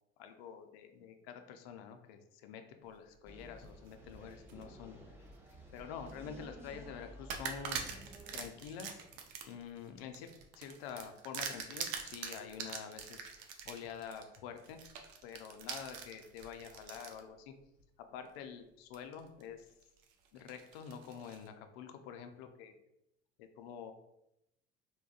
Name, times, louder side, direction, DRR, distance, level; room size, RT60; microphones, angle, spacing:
voice 1, 0.2-5.0 5.7-7.8 8.1-9.1 9.5-13.3 13.6-14.8 15.2-17.5 18.1-19.6 20.3-22.7 23.4-23.9, left 7 dB, 65° left, 7 dB, 0.4 m, -47 dB
sound 1, 3.2-8.5, right 1 dB, 5° right, 0.5 m, -54 dB
sound 2, 3.4-4.7 5.2-6.2 6.6-6.7 7.3-17.2 17.8-17.9 18.9-19.4 19.8-21.5, right 6 dB, 60° right, 0.5 m, -44 dB
3.4 x 2.2 x 2.3 m, 0.84 s
figure-of-eight pair, 60°, 34 cm